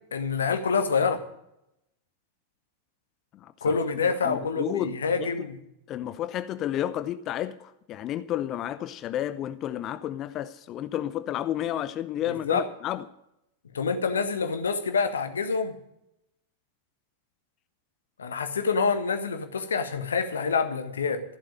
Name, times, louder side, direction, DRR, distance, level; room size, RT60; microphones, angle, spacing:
voice 1, 0.1-1.2 3.6-5.6 12.3-12.7 13.7-15.7 18.2-21.2, left 5 dB, 70° left, 1.5 m, -27 dB
voice 2, 3.4-3.8 4.2-5.3 5.9-13.0, left 11 dB, 35° left, 0.6 m, -31 dB
14.5 x 7.7 x 8.9 m
figure-of-eight pair, 90°, 0 cm